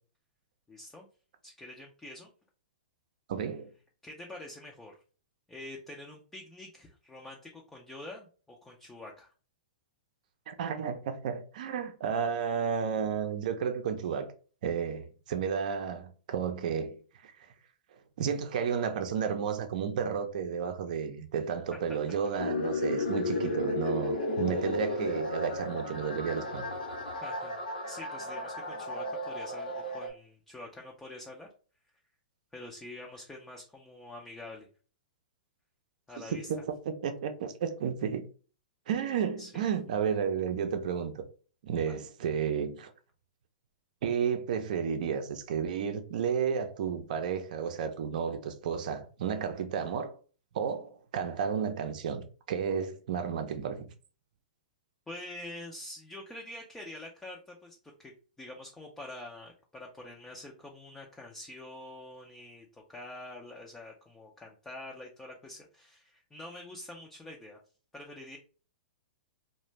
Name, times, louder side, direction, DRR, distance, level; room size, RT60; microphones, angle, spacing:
voice 1, 0.7-1.1 1.4-2.3 4.0-5.0 5.5-9.3 27.2-31.5 32.5-34.7 36.1-36.5 39.4-39.6 41.9-42.0 55.1-58.1 58.4-67.6 67.9-68.4, left 1 dB, 10° left, 0.4 m, -46 dB
voice 2, 3.3-3.7 10.5-14.3 14.6-17.0 17.2-17.5 18.2-26.7 36.2-38.3 38.9-41.2 41.6-42.9 44.0-50.1 50.5-53.9, right 7 dB, 60° right, 0.5 m, -32 dB
sound 1, 22.4-30.1, left 2 dB, 80° left, 0.8 m, -33 dB
2.4 x 2.2 x 3.1 m
hypercardioid pair, 125°, 5 cm